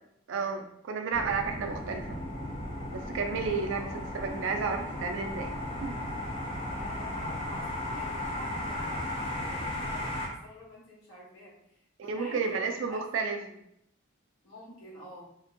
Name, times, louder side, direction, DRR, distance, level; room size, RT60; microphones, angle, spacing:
voice 1, 0.3-2.5 2.9-5.6 5.8-6.0 12.0-13.4, right 5 dB, 65° right, 4 dB, 0.3 m, -32 dB
sound 1, 1.1-10.3, left 1 dB, 25° left, 0.5 m, -35 dB
voice 2, 3.7-4.0 6.7-13.5 14.4-15.3, left 1 dB, 85° left, -8 dB, 1.3 m, -48 dB
3.5 x 2.1 x 2.6 m, 0.76 s
head